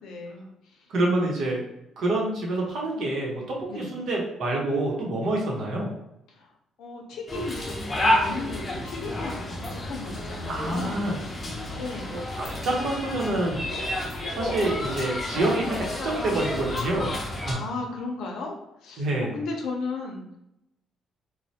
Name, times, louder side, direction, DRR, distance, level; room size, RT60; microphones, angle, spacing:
voice 1, 0.0-0.9 3.7-4.0 6.3-6.5 6.8-11.1 11.7-12.2 17.5-18.6 18.8-19.1 19.3-20.4, left 3 dB, 80° left, 1 dB, 0.6 m, -36 dB
voice 2, 0.9-1.6 2.0-5.9 10.5-11.1 12.6-13.6 14.4-17.1 17.5-17.6 19.0-19.3, right 2 dB, 60° right, -2 dB, 0.9 m, -27 dB
sound 1, 7.3-17.5, left 1 dB, 25° left, 0.6 m, -30 dB
3.1 x 2.1 x 2.7 m, 0.85 s
cardioid pair, 155°, 0 cm